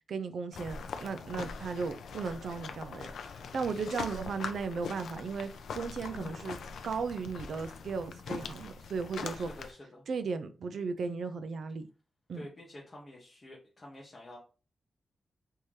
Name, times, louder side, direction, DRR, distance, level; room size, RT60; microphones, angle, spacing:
voice 1, 0.1-3.1 3.5-5.5 5.7-6.6 6.8-9.5 10.1-11.9 12.3-12.4, right 5 dB, 60° right, 0.3 m, -36 dB
sound 1, 0.5-9.7, left 5 dB, 80° left, 0.4 m, -42 dB
sound 2, 2.2-2.5 3.2-3.4 4.4-4.6 5.4-5.5 6.2-6.4 7.1-7.4, right 1 dB, 40° right, 1.4 m, -60 dB
voice 2, 9.3-10.0 12.3-14.4, left 1 dB, 25° left, 0.7 m, -49 dB
3.6 x 2.7 x 3.1 m
wide cardioid pair, 180°, 0 cm